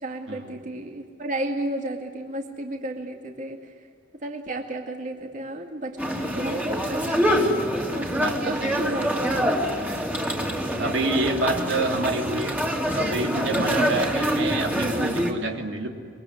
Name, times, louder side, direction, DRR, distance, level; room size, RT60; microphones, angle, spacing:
voice 1, 0.0-3.7 4.2-7.5 7.9-9.3, right 1 dB, 45° right, 3 dB, 2.2 m, -33 dB
sound 1, 6.0-15.3, equal, 10° right, 2.7 m, -25 dB
voice 2, 8.1-9.0 10.8-12.6 12.9-15.9, right 2 dB, 85° right, 2 dB, 3.1 m, -27 dB
24.5 x 23.5 x 9.7 m, 2.3 s
head